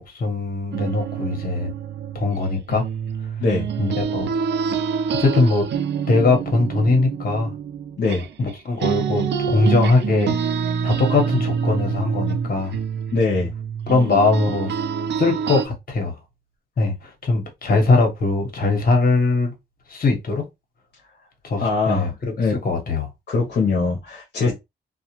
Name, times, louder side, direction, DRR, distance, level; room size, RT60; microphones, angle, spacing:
voice 1, 0.0-1.7 2.1-2.8 3.8-4.3 5.2-5.6 6.1-7.5 8.4-10.5 10.8-12.7 13.9-14.7 15.2-16.1 16.8-19.5 19.9-20.4 21.4-23.1 24.4-24.5, left 3 dB, 55° left, 1.1 m, -21 dB
sound 1, 0.7-8.5 8.8-15.7, right 7 dB, 70° right, 0.4 m, -26 dB
voice 2, 13.1-13.5 21.6-22.1 22.4-22.6 23.3-24.5, left 4 dB, 70° left, 0.8 m, -21 dB
2.3 x 2.2 x 2.9 m
cardioid pair, 80°, 18 cm